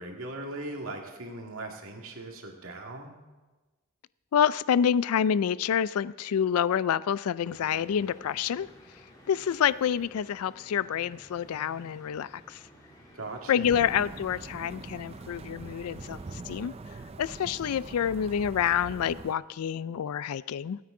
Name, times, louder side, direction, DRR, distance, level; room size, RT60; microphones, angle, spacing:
voice 1, 0.0-3.2 13.1-13.8, right 2 dB, 65° right, 2 dB, 2.1 m, -39 dB
voice 2, 4.3-8.7 9.3-12.6 13.5-16.2 16.5-16.7 17.2-20.8, left 8 dB, 80° left, 18 dB, 0.3 m, -27 dB
sound 1, 7.4-16.4, equal, 15° left, 3.0 m, -54 dB
sound 2, 13.6-19.3, right 3 dB, 25° right, 0.4 m, -43 dB
25.5 x 9.4 x 3.8 m, 1.2 s
head